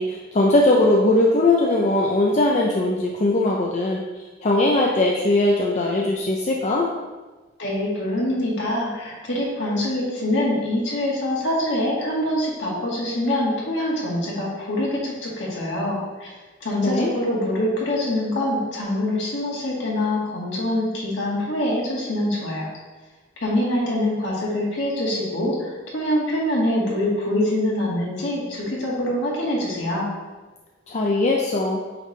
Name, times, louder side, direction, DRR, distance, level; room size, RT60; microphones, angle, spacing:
voice 1, 0.0-4.0 4.4-6.9 16.8-17.2 30.9-31.8, left 2 dB, 35° left, -1 dB, 0.5 m, -20 dB
voice 2, 7.6-16.3 16.6-22.7 23.4-30.1, left 1 dB, 65° left, -4 dB, 1.8 m, -24 dB
8.6 x 3.5 x 3.2 m, 1.3 s
head